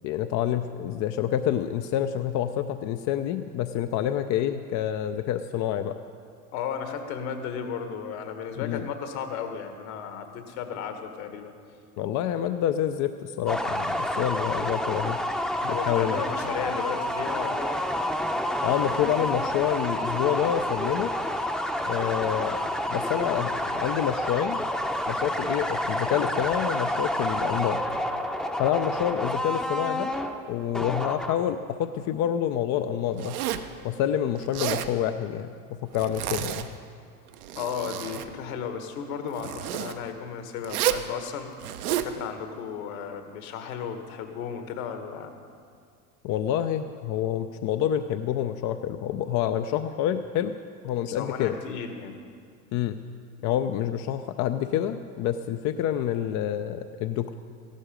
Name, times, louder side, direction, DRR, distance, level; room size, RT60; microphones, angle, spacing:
voice 1, 0.0-5.9 8.6-8.8 12.0-15.2 15.6-16.2 18.6-21.1 21.9-22.6 22.9-24.6 25.1-27.8 28.6-30.1 30.5-33.4 33.8-36.7 46.2-50.6 50.8-51.6 52.7-53.0 53.4-57.3, left 10 dB, 40° left, 8 dB, 0.6 m, -27 dB
voice 2, 6.5-11.5 15.7-17.9 37.5-41.5 41.9-45.3 51.0-52.2, left 7 dB, 65° left, 6 dB, 1.7 m, -34 dB
sound 1, 13.5-31.6, equal, ahead, 0.7 m, -29 dB
Zipper (clothing), 33.2-33.7 34.4-34.9 35.9-36.7 37.3-38.3 39.4-39.9 40.6-41.1 41.6-42.1, right 12 dB, 70° right, 0.9 m, -30 dB
14.5 x 11.5 x 5.1 m, 2.2 s
hypercardioid pair, 85°, 45 cm